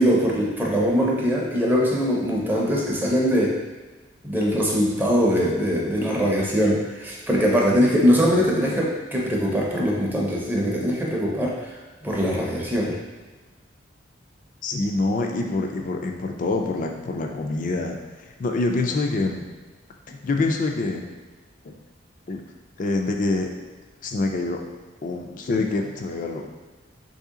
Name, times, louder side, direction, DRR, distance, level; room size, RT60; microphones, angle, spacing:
voice 1, 0.0-3.5 4.2-11.7 12.0-13.0, equal, 10° right, -3 dB, 0.6 m, -22 dB
voice 2, 8.3-8.8 14.6-19.5 20.1-21.1 21.6-21.7 22.3-22.4 22.8-23.5 24.0-24.6 25.0-26.5, left 2 dB, 45° left, 3 dB, 0.4 m, -26 dB
3.2 x 2.7 x 3.7 m, 1.3 s
head